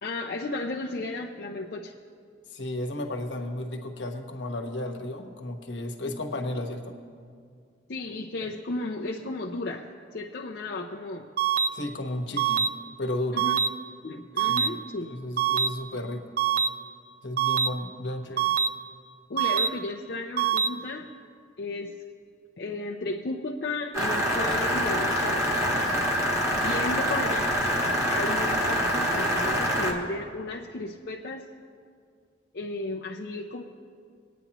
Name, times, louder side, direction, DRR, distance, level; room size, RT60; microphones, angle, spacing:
voice 1, 0.0-1.9 7.9-9.9 10.1-11.3 13.3-13.6 14.0-15.1 19.3-21.1 21.6-22.0 22.6-25.8 26.6-27.6 28.1-31.5 32.5-33.6, left 2 dB, 55° left, -1 dB, 0.5 m, -34 dB
voice 2, 2.5-6.9 11.7-12.7 13.0-13.4 14.5-16.3 17.2-18.5, left 1 dB, 80° left, 4 dB, 1.1 m, -33 dB
sound 1, 11.4-11.7 12.4-12.7 13.4-13.7 14.4-14.7 15.4-15.7 16.4-16.7 17.4-17.7 18.4-18.7 19.4-19.7 20.4-20.7, right 8 dB, 50° right, 0.4 m, -23 dB
sound 2, 23.9-29.9, equal, 15° right, 1.2 m, -25 dB
21.5 x 9.2 x 3.0 m, 2.2 s
head